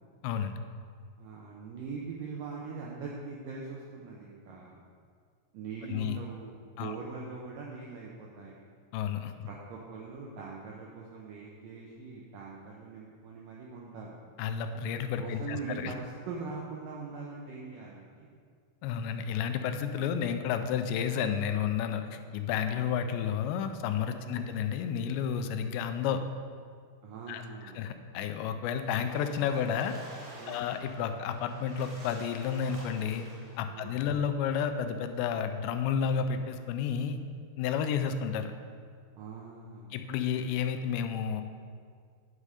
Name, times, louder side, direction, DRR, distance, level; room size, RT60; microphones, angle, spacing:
voice 1, 0.2-0.6 5.9-6.2 6.8-6.9 8.9-9.5 14.4-15.9 18.8-26.2 27.3-30.0 30.5-33.3 33.6-37.2 37.6-38.5 39.9-41.4, left 7 dB, 90° left, 8 dB, 2.8 m, -31 dB
voice 2, 1.2-4.8 5.5-8.7 9.5-14.2 15.2-18.3 24.2-24.5 27.0-27.8 30.4-30.7 33.7-34.2 39.2-40.0, right 4 dB, 80° right, -3 dB, 1.9 m, -42 dB
Splash splatter, 28.8-33.7, right 1 dB, 55° right, 3.7 m, -50 dB
9.8 x 6.5 x 4.9 m, 2.1 s
omnidirectional pair, 5.0 m